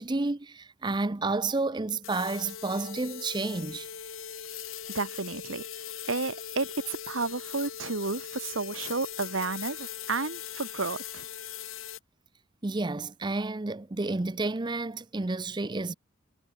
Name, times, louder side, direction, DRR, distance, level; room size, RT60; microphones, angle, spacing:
voice 1, 0.0-3.9 12.6-15.9, right 3 dB, 20° right, 0.6 m, -30 dB
sound 1, 2.0-12.0, left 8 dB, 80° left, 2.6 m, -40 dB
voice 2, 4.9-5.7 6.1-11.3, right 3 dB, 75° right, 1.6 m, -32 dB
head